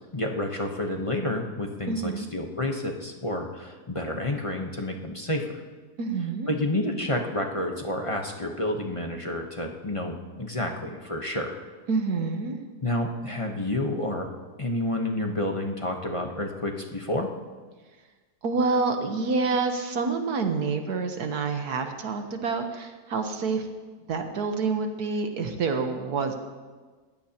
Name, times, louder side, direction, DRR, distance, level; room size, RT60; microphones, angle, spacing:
voice 1, 0.1-5.6 6.5-11.6 12.8-14.3 14.6-17.3, left 1 dB, 25° left, 2 dB, 0.9 m, -29 dB
voice 2, 1.9-2.3 6.0-6.5 11.9-12.6 18.4-23.7 24.1-26.4, right 4 dB, 75° right, 5 dB, 1.6 m, -27 dB
21.0 x 15.5 x 2.9 m, 1.4 s
omnidirectional pair, 1.7 m